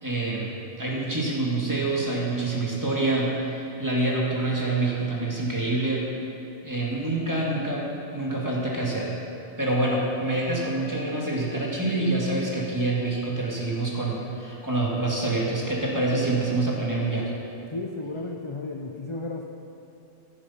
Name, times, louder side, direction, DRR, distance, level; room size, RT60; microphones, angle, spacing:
voice 1, 0.0-6.1 6.6-9.1 9.6-17.3, right 2 dB, 15° right, -4 dB, 2.1 m, -26 dB
voice 2, 17.7-19.4, left 2 dB, 35° left, 2 dB, 0.5 m, -33 dB
15.0 x 8.3 x 5.6 m, 2.7 s
omnidirectional pair, 1.4 m